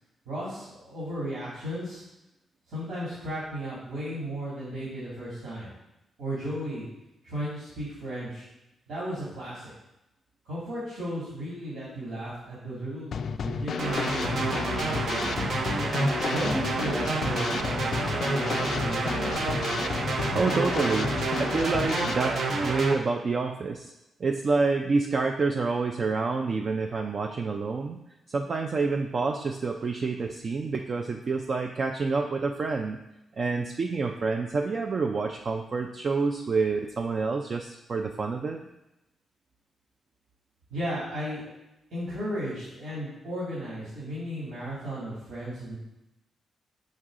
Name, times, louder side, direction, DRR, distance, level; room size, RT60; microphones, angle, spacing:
voice 1, 0.3-2.0 2.7-5.7 6.2-6.8 7.2-8.5 8.9-9.7 10.4-15.3 16.3-19.4 40.7-41.4 41.9-45.8, equal, 85° right, -10 dB, 2.6 m, -35 dB
Drum kit / Snare drum, 13.1-22.1, left 6 dB, 50° left, 0.3 m, -32 dB
sound 1, 13.8-22.9, right 3 dB, 60° right, 0.8 m, -29 dB
voice 2, 20.3-21.1 21.4-23.9 24.2-28.0 28.3-33.0 33.4-38.6, right 4 dB, 35° right, 3 dB, 0.4 m, -28 dB
6.2 x 5.4 x 3.7 m, 0.91 s
wide cardioid pair, 150°, 0 cm